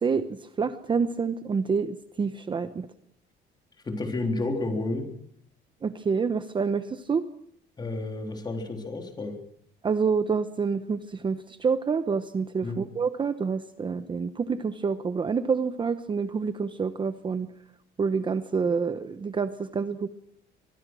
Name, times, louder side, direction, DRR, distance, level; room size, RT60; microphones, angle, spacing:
voice 1, 0.0-2.9 5.8-7.2 9.8-17.5 18.0-20.1, right 5 dB, 25° right, 10 dB, 0.9 m, -27 dB
voice 2, 3.9-5.1 7.8-9.4 12.6-12.8, left 2 dB, 20° left, 3 dB, 3.7 m, -31 dB
24.0 x 22.0 x 6.2 m, 0.71 s
cardioid pair, 145°, 20 cm